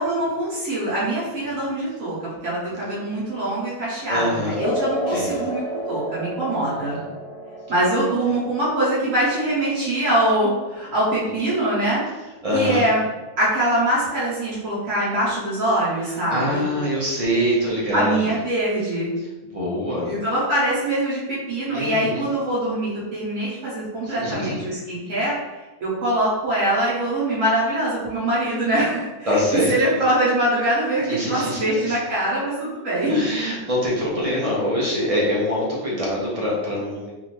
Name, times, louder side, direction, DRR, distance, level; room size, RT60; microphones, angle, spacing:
voice 1, 0.0-2.1 2.4-7.0 7.7-12.0 12.5-13.0 13.4-16.6 17.9-19.1 20.0-25.3 25.8-29.4 29.7-33.1, right 1 dB, 65° right, -9 dB, 1.5 m, -23 dB
voice 2, 4.1-4.6 4.9-5.4 6.7-7.0 11.2-11.3 12.4-12.8 16.1-18.4 19.4-20.2 21.7-22.2 24.0-24.6 29.3-30.0 31.0-32.0 33.1-37.1, left 1 dB, 30° right, -5 dB, 0.8 m, -24 dB
sound 1, 4.6-11.6, equal, 75° left, 1.2 m, -32 dB
3.6 x 2.7 x 3.1 m, 1.1 s
omnidirectional pair, 1.5 m